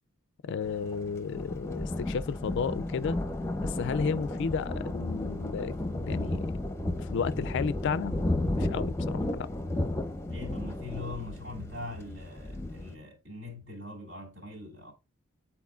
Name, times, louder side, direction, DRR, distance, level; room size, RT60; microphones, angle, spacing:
voice 1, 0.4-3.2 3.6-6.5 7.1-9.5, left 6 dB, 60° left, 0.3 m, -33 dB
Thunder, 0.6-12.9, left 1 dB, 15° left, 0.7 m, -33 dB
voice 2, 10.3-14.9, left 2 dB, 60° right, 2.8 m, -42 dB
9.5 x 4.2 x 2.4 m
head